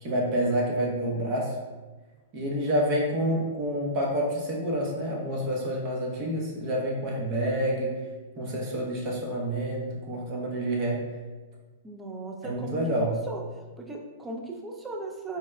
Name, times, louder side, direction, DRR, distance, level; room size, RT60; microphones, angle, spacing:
voice 1, 0.0-1.5 2.3-8.0 8.4-11.0 12.4-13.2, equal, 40° right, -2 dB, 0.9 m, -28 dB
voice 2, 11.8-12.8 13.0-13.4 13.8-15.4, right 3 dB, 15° right, 0 dB, 0.5 m, -37 dB
4.5 x 2.0 x 2.3 m, 1.3 s
hypercardioid pair, 120°, 0 cm